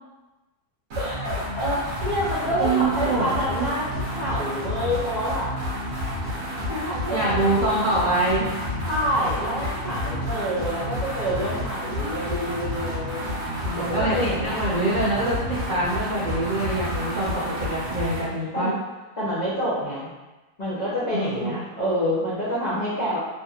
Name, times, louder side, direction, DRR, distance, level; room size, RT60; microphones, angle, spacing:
voice 1, 0.9-5.5 6.7-7.5 8.9-13.3 13.8-14.6 18.5-18.8 19.2-20.1 20.6-23.2, equal, 50° left, -11 dB, 0.5 m, -27 dB
sound 1, 0.9-18.3, left 1 dB, 50° right, 1.0 m, -30 dB
voice 2, 2.5-3.7 7.1-8.5 13.6-18.7 21.1-21.5, right 2 dB, 70° right, -8 dB, 0.4 m, -25 dB
3.3 x 2.8 x 2.4 m, 1.1 s
omnidirectional pair, 1.7 m